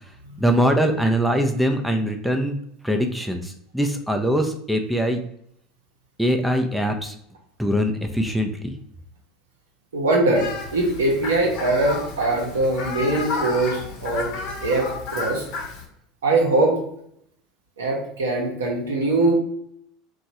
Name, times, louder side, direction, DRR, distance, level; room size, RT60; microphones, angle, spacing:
voice 1, 0.4-2.6 2.8-5.2 6.2-7.1 7.6-8.8, equal, ahead, 4 dB, 0.4 m, -22 dB
voice 2, 9.9-14.3 14.6-15.5 16.2-16.8 17.8-19.3, right 2 dB, 80° right, 0 dB, 0.8 m, -22 dB
Fowl, 10.3-15.8, left 4 dB, 60° left, 0.7 m, -32 dB
2.9 x 2.3 x 2.7 m, 0.70 s
hypercardioid pair, 80°, 0 cm